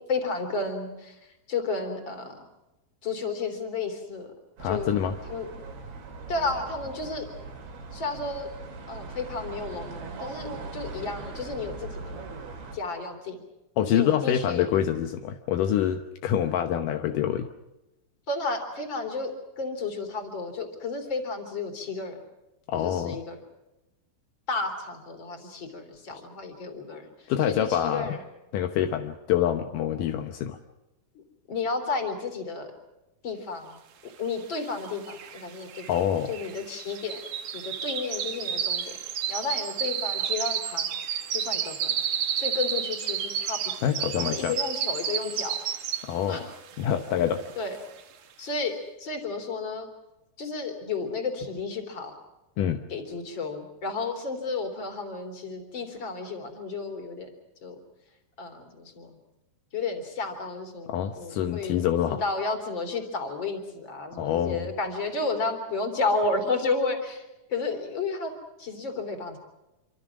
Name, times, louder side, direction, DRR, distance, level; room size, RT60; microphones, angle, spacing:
voice 1, 0.1-2.5 3.0-4.3 4.6-5.0 5.3-5.5 6.3-7.3 7.9-8.5 8.9-12.2 12.7-13.4 13.9-14.7 18.3-22.2 22.7-23.4 24.5-28.2 31.1-31.2 31.5-32.7 33.2-33.8 34.0-35.9 36.3-37.2 37.5-39.0 39.3-41.0 41.3-42.0 42.4-45.6 46.3-46.6 47.6-47.8 48.4-49.9 50.4-52.1 52.9-57.3 57.6-57.8 58.4-59.1 59.7-61.8 62.1-68.3 68.6-69.4, left 3 dB, 30° left, 5 dB, 3.8 m, -32 dB
voice 2, 4.6-5.2 13.8-17.5 22.7-23.2 27.3-28.2 28.5-30.6 35.9-36.3 43.8-44.5 46.1-46.4 46.8-47.4 52.6-52.8 60.9-62.2 64.2-64.7, left 10 dB, 75° left, 7 dB, 2.0 m, -26 dB
sound 1, 4.6-12.8, right 3 dB, 80° right, 6.0 m, -40 dB
sound 2, 34.6-34.7 34.8-46.3 46.7-47.0 47.5-47.6, right 8 dB, 55° right, 2.3 m, -31 dB
27.0 x 26.0 x 6.1 m, 0.99 s
omnidirectional pair, 5.0 m